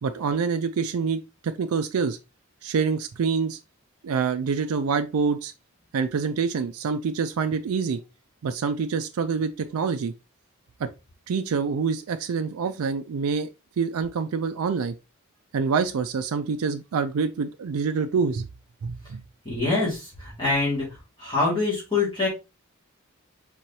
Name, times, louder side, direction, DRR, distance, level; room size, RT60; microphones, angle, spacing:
voice 1, 0.0-2.2 2.6-3.6 4.0-5.5 5.9-8.0 8.4-10.1 10.8-10.9 11.3-13.5 13.8-14.9 15.5-18.5 18.8-19.2, right 5 dB, 85° right, 0.4 m, -26 dB
voice 2, 19.4-20.9 21.2-22.3, left 3 dB, 20° left, 2.1 m, -25 dB
4.6 x 3.8 x 2.8 m
head